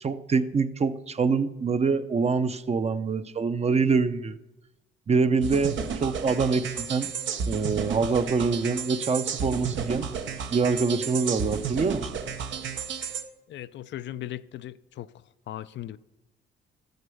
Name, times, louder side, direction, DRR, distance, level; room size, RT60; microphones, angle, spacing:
voice 1, 0.0-4.4 5.1-7.1 7.5-10.1 10.5-12.1, right 4 dB, 30° right, 0.7 m, -25 dB
sound 1, 5.4-13.2, right 6 dB, 70° right, 1.0 m, -32 dB
voice 2, 13.5-15.1 15.5-16.0, left 13 dB, 65° left, 0.5 m, -37 dB
13.5 x 6.6 x 7.0 m
cardioid pair, 90°, 20 cm